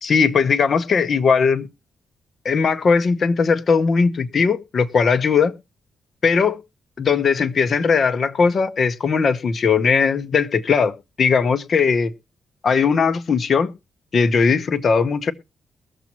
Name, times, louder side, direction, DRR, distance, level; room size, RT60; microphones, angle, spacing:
voice 1, 0.0-1.7 2.4-5.5 6.2-6.6 7.0-12.1 12.6-13.7 14.1-15.3, left 5 dB, 45° left, 0.8 m, -18 dB
21.0 x 7.2 x 3.0 m
wide cardioid pair, 145°, 0 cm